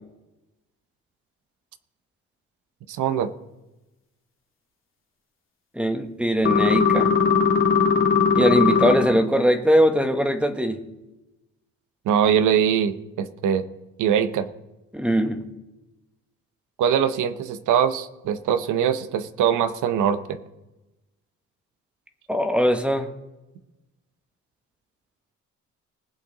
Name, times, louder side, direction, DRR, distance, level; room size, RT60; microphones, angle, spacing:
voice 1, 2.9-3.3 12.1-13.6 14.0-14.5 16.8-20.4, right 8 dB, 80° right, 11 dB, 0.9 m, -22 dB
voice 2, 5.7-7.2 8.3-10.8 14.9-15.4 22.3-23.1, equal, 5° right, 6 dB, 1.3 m, -21 dB
sound 1, 6.4-8.9, left 5 dB, 45° left, 2.4 m, -19 dB
20.0 x 7.7 x 4.0 m, 1.0 s
cardioid pair, 90°, 30 cm